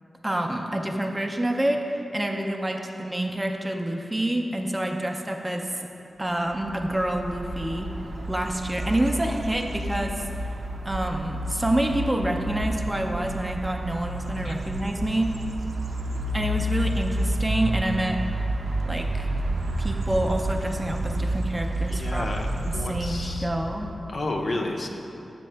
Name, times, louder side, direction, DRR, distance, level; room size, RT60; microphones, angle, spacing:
voice 1, 0.2-5.7 6.2-7.9 8.3-10.1 10.8-15.3 16.3-18.2 18.8-19.3 19.8-22.3 22.6-23.9, right 1 dB, 15° right, 3 dB, 0.4 m, -27 dB
sound 1, 6.5-24.1, right 1 dB, 85° right, 0.5 m, -30 dB
voice 2, 21.9-23.5 24.1-24.9, left 2 dB, 55° left, 1 dB, 0.6 m, -31 dB
7.6 x 6.2 x 3.3 m, 2.8 s
wide cardioid pair, 140°, 0 cm